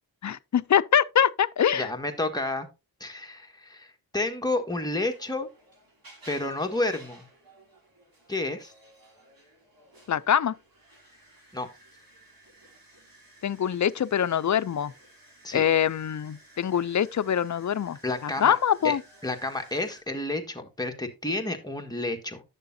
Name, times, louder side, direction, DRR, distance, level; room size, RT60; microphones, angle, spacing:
voice 1, 0.2-1.9 10.1-10.5 13.4-14.9 15.5-19.0, left 9 dB, 50° left, 0.5 m, -24 dB
voice 2, 1.7-2.7 3.0-5.5 6.3-7.2 8.3-8.7 11.5-11.7 15.4-15.7 18.0-18.5 18.8-19.0 19.2-22.4, left 2 dB, 10° left, 1.6 m, -30 dB
sound 1, 4.9-20.0, right 1 dB, 65° right, 3.0 m, -55 dB
10.5 x 6.7 x 2.7 m
cardioid pair, 55°, 38 cm